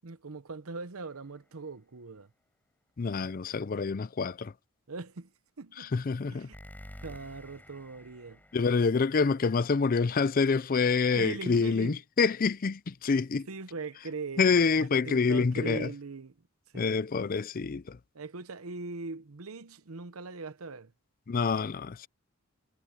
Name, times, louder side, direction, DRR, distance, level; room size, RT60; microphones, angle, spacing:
voice 1, 0.0-2.3 4.9-5.3 5.6-5.9 6.3-6.6 7.0-8.4 11.2-12.0 13.5-16.4 16.7-17.0 18.1-20.9, right 4 dB, 80° right, 0.9 m, -41 dB
sound 1, 1.0-1.7 6.5-10.2, equal, 10° left, 4.4 m, -52 dB
voice 2, 3.0-4.5 5.8-6.5 8.5-13.5 14.4-15.9 16.7-18.0 21.3-22.1, left 5 dB, 40° left, 0.4 m, -27 dB
head